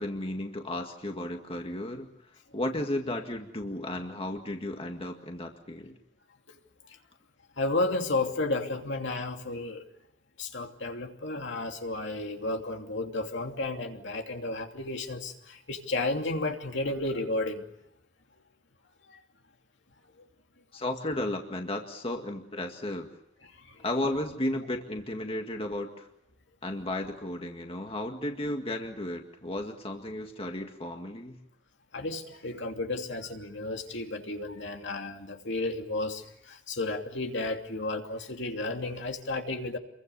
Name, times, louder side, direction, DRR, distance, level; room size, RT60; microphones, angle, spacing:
voice 1, 0.0-6.0 20.7-23.1 23.8-26.1 26.6-31.4, left 1 dB, 30° left, 3 dB, 1.9 m, -34 dB
voice 2, 7.6-9.8 10.4-17.6 19.1-19.2 20.2-20.3 23.4-23.8 31.9-39.8, left 2 dB, 65° left, 4 dB, 2.8 m, -32 dB
28.5 x 23.0 x 7.0 m, 0.82 s
head